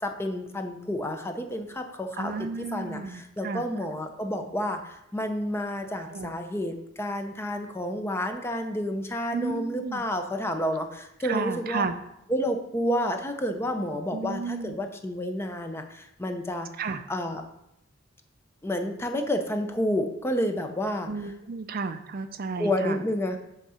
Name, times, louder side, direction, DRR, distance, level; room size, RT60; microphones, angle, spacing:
voice 1, 0.0-11.8 12.3-16.7 17.1-17.4 18.6-21.1 22.6-23.4, equal, 10° left, 6 dB, 0.5 m, -30 dB
voice 2, 2.2-3.6 5.9-6.3 9.3-10.0 11.2-12.0 14.1-14.8 16.8-17.0 21.1-23.0, right 4 dB, 45° right, 9 dB, 0.4 m, -33 dB
8.1 x 3.7 x 5.6 m, 0.81 s
head